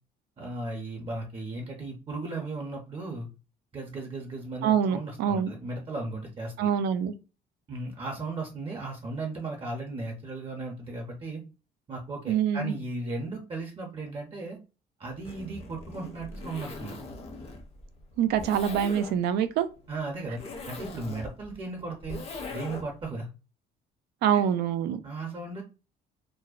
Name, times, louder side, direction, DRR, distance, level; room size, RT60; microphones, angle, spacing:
voice 1, 0.4-3.3 3.7-6.7 7.7-11.4 11.9-14.6 15.0-17.0 19.9-22.2 22.5-23.3 24.3-24.4 25.0-25.6, right 2 dB, 30° right, 0.6 m, -36 dB
voice 2, 4.6-5.5 6.6-7.1 12.3-12.8 18.2-19.7 24.2-25.0, right 8 dB, 80° right, 0.4 m, -25 dB
Zipper (clothing), 15.1-23.1, left 3 dB, 35° left, 0.7 m, -41 dB
2.5 x 2.0 x 2.3 m
cardioid pair, 110°, 17 cm